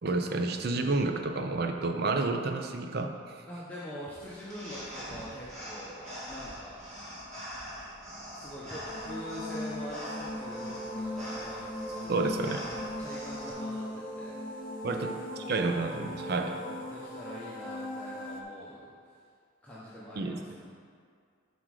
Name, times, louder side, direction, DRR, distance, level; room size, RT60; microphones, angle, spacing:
voice 1, 0.0-3.4 12.1-12.6 14.8-15.1 15.5-16.6 20.2-20.4, right 3 dB, 50° right, 6 dB, 0.5 m, -30 dB
voice 2, 3.5-6.8 8.3-15.7 16.5-18.9 19.6-20.6, equal, 5° left, -9 dB, 0.8 m, -44 dB
sound 1, 4.2-13.5, equal, 35° right, 1.8 m, -43 dB
sound 2, 8.9-18.4, left 1 dB, 40° left, 0.7 m, -39 dB
7.6 x 5.2 x 4.8 m, 2.2 s
head